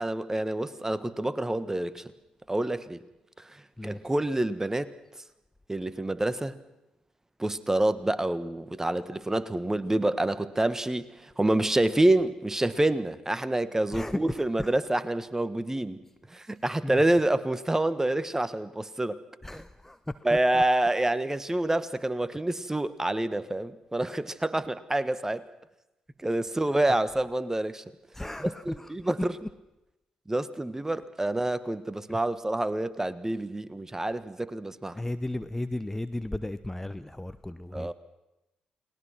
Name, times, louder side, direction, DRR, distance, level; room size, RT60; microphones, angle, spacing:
voice 1, 0.0-2.0 2.5-3.0 3.8-4.9 5.7-6.6 7.4-16.0 16.3-19.2 20.2-25.4 26.2-27.8 28.7-28.8 29.0-29.3 30.3-35.0 37.7-37.9, right 1 dB, 15° right, 15 dB, 1.5 m, -27 dB
voice 2, 13.9-14.2 14.6-14.7 16.8-17.0 19.4-20.2 20.5-20.6 28.1-29.1 29.4-29.5 32.1-32.2 34.9-37.9, left 1 dB, 10° left, 12 dB, 0.9 m, -35 dB
30.0 x 20.5 x 6.1 m, 0.95 s
figure-of-eight pair, 40°, 3 cm